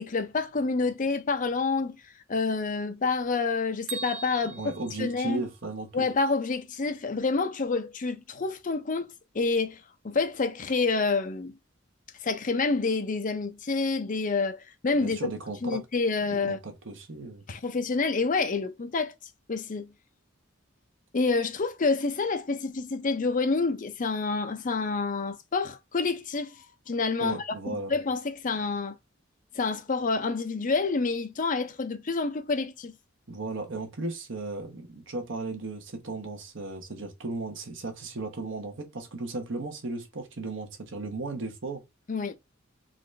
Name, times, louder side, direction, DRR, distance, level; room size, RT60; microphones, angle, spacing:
voice 1, 0.0-2.0 2.3-4.6 5.0-5.4 5.9-11.5 12.2-15.3 15.6-16.6 17.5-19.1 19.5-19.9 21.1-27.4 27.9-29.0 29.6-32.9 42.1-42.3, left 4 dB, 40° left, 0.6 m, -28 dB
Bell, 3.9-5.9, right 4 dB, 85° right, 0.8 m, -41 dB
voice 2, 4.5-6.0 14.9-15.8 16.5-17.4 27.2-27.9 33.3-41.8, right 3 dB, 65° right, 1.1 m, -35 dB
4.0 x 2.6 x 3.3 m
head